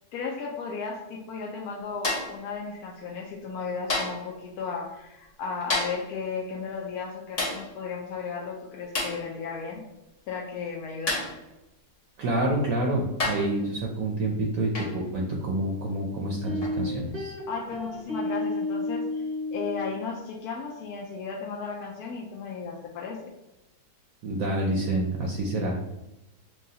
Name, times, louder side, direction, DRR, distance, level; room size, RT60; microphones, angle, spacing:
voice 1, 0.1-9.8 10.3-11.3 17.5-23.3, left 5 dB, 70° left, -1 dB, 1.0 m, -35 dB
sound 1, 2.0-2.4 3.9-4.3 5.7-6.1 7.4-7.7 8.9-9.3 11.1-11.4 12.5-12.6 13.2-13.6 14.7-15.0 16.6-16.8, left 2 dB, 50° left, 0.4 m, -29 dB
voice 2, 12.2-17.3 24.2-25.8, right 1 dB, 65° right, 0 dB, 0.9 m, -28 dB
sound 2, 16.4-19.9, left 2 dB, 40° right, 0.5 m, -31 dB
6.1 x 2.3 x 2.8 m, 0.96 s
omnidirectional pair, 1.8 m